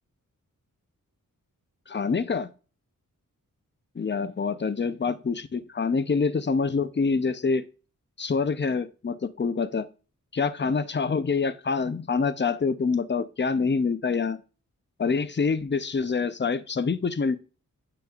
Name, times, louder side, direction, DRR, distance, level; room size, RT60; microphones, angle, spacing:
voice 1, 1.9-2.5 4.0-7.7 8.2-9.9 10.3-14.4 15.0-17.4, left 5 dB, 35° left, 13 dB, 0.6 m, -26 dB
8.9 x 5.9 x 2.4 m, 0.35 s
wide cardioid pair, 80°, 34 cm